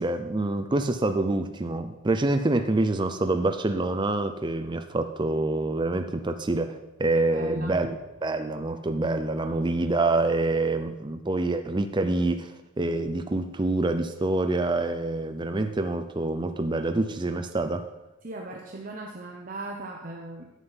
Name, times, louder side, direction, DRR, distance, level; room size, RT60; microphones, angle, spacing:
voice 1, 0.0-17.9, right 2 dB, 20° right, 7 dB, 0.5 m, -26 dB
voice 2, 7.1-7.8 18.2-20.5, right 2 dB, 40° right, 0 dB, 1.0 m, -38 dB
11.5 x 7.8 x 5.6 m, 1.0 s
head